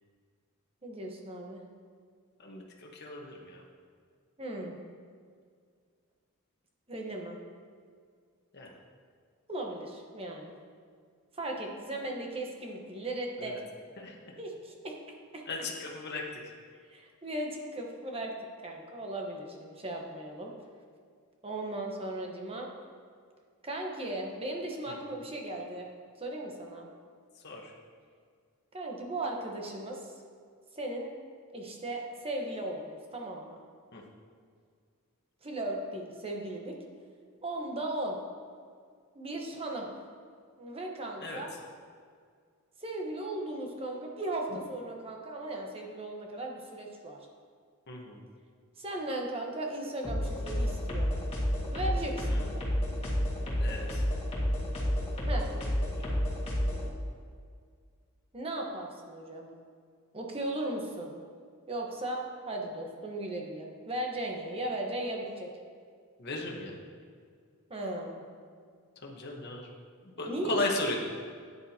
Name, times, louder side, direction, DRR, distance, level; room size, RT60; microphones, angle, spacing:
voice 1, 0.8-1.6 4.4-4.8 6.9-7.4 9.5-10.5 11.3-13.6 14.4-15.0 15.3-15.4 16.7-18.3 18.6-20.5 21.4-22.7 23.6-25.9 26.2-26.9 28.7-30.1 30.7-31.1 31.5-33.6 35.4-36.7 37.4-38.1 39.1-39.9 40.6-41.5 42.8-47.2 48.8-51.1 51.7-52.6 55.2-55.5 58.3-59.5 60.1-61.1 61.7-65.5 67.7-68.2 70.3-70.6, right 1 dB, 25° right, 0 dB, 1.2 m, -37 dB
voice 2, 2.4-3.6 8.5-8.7 13.4-13.6 14.0-14.2 15.5-16.3 24.9-25.0 27.4-27.7 33.9-34.0 41.2-41.4 47.9-48.2 52.3-52.5 53.6-54.0 66.2-66.8 69.0-69.7 70.0-71.0, left 2 dB, 50° left, -1 dB, 1.2 m, -36 dB
sound 1, 50.0-56.8, equal, 25° left, 1.9 m, -30 dB
11.5 x 9.7 x 2.9 m, 2.1 s
head